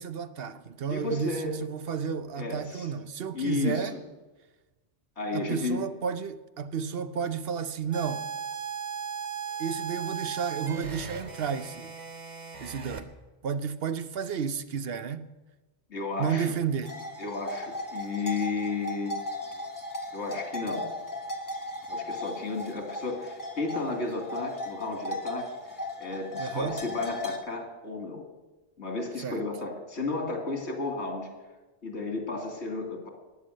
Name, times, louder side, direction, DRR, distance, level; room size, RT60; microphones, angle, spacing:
voice 1, 0.0-3.9 5.3-8.3 9.6-11.9 12.6-13.1 13.4-15.3 16.2-16.9 26.4-26.8 29.2-29.4, right 7 dB, 65° right, 0.9 m, -32 dB
voice 2, 0.9-1.6 2.4-2.9 3.3-4.0 5.2-5.9 15.9-16.5 17.2-19.1 20.1-20.9 21.9-25.5 26.0-28.2 28.8-31.3 31.8-33.1, left 3 dB, 85° left, 2.7 m, -33 dB
sound 1, 7.9-13.0, right 6 dB, 45° right, 1.1 m, -37 dB
sound 2, 16.8-27.4, left 2 dB, 20° left, 1.4 m, -37 dB
15.5 x 10.5 x 6.4 m
omnidirectional pair, 1.1 m